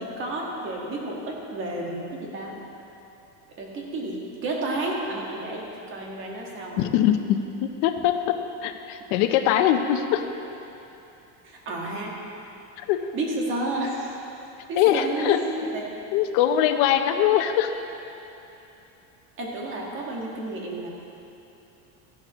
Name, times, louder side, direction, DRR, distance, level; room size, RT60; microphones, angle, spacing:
voice 1, 0.0-2.6 3.6-6.9 11.4-12.2 13.1-14.1 14.7-15.9 19.4-20.9, right 2 dB, 35° right, -2 dB, 1.6 m, -31 dB
voice 2, 6.8-10.2 12.8-13.1 14.8-15.4 16.1-17.7, left 10 dB, 65° left, 7 dB, 0.8 m, -22 dB
14.0 x 11.5 x 3.0 m, 3.0 s
cardioid pair, 170°, 37 cm